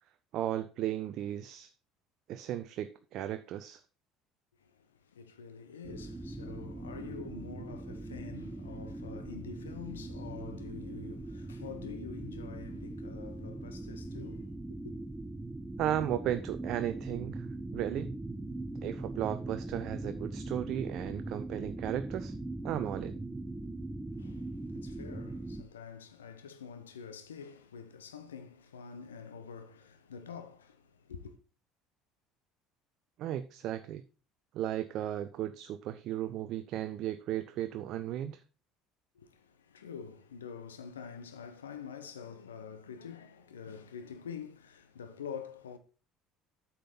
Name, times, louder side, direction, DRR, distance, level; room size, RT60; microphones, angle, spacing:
voice 1, 0.3-1.7 2.3-3.8 15.8-17.5 17.7-18.1 18.8-22.3 22.6-23.2 33.2-34.0 34.5-38.4, right 11 dB, 55° right, 0.5 m, -35 dB
voice 2, 4.6-15.0 24.1-31.4 39.1-45.8, left 7 dB, 80° left, 0.8 m, -47 dB
sound 1, 5.8-25.6, right 2 dB, 10° right, 0.7 m, -41 dB
8.3 x 5.7 x 4.1 m
figure-of-eight pair, 60°, 0 cm